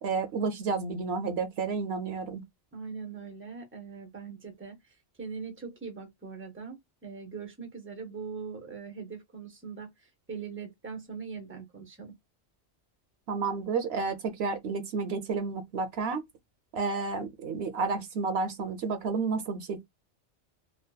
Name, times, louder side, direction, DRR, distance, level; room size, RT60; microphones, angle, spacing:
voice 1, 0.0-2.4 13.3-16.2 16.7-19.8, right 4 dB, 70° right, 0.8 m, -31 dB
voice 2, 2.7-12.1, right 5 dB, 15° right, 0.4 m, -41 dB
2.6 x 2.2 x 2.2 m
omnidirectional pair, 1.2 m